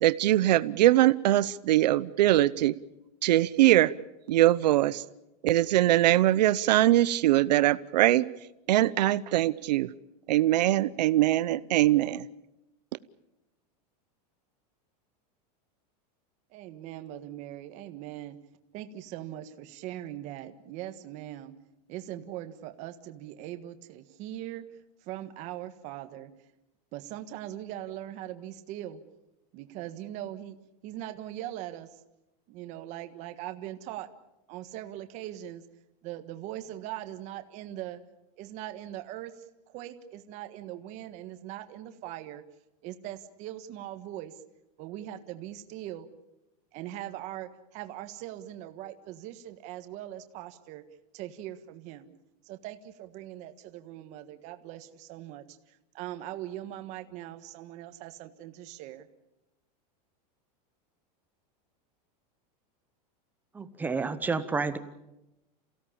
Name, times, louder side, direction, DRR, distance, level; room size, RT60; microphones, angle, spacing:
voice 1, 0.0-2.7 3.2-3.9 4.3-5.0 5.4-8.2 8.7-9.9 10.3-12.3, right 14 dB, 85° right, 16 dB, 0.8 m, -22 dB
voice 2, 16.5-18.4 18.7-21.5 21.9-24.7 25.0-26.3 26.9-29.0 29.5-30.6 30.8-32.0 32.5-34.1 34.5-35.6 36.0-38.0 38.4-42.4 42.8-44.4 44.8-46.1 46.7-50.8 51.1-52.1 52.4-59.1, right 13 dB, 35° right, 9 dB, 1.5 m, -41 dB
voice 3, 63.5-64.8, right 4 dB, 10° right, 10 dB, 0.8 m, -30 dB
28.5 x 17.0 x 8.7 m, 0.94 s
supercardioid pair, 175°, 21 cm